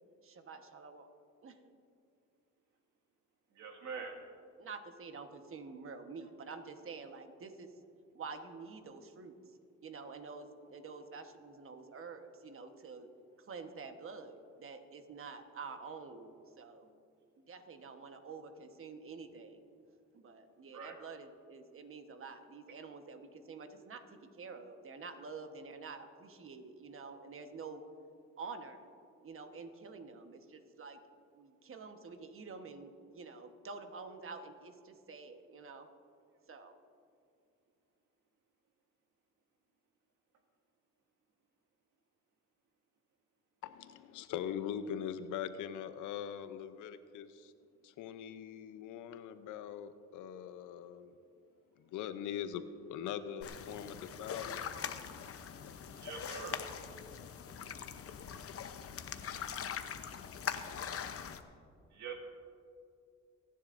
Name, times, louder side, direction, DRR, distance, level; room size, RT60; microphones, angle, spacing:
voice 1, 0.2-1.1 1.4-1.7 4.6-7.7 8.1-13.1 13.4-16.9 17.4-19.6 20.1-27.8 28.4-28.8 29.2-31.0 31.3-35.9 36.5-36.7, right 4 dB, 45° right, 7 dB, 1.2 m, -48 dB
voice 2, 3.6-4.1 20.7-20.9 56.0-56.6 61.9-62.2, right 5 dB, 70° right, 1 dB, 2.2 m, -43 dB
voice 3, 43.6-47.5 47.8-51.1 51.8-54.6, left 9 dB, 90° left, 11 dB, 0.7 m, -42 dB
sound 1, 53.4-61.4, left 7 dB, 50° left, 0.8 m, -42 dB
27.5 x 10.5 x 2.6 m, 2.4 s
cardioid pair, 90°, 30 cm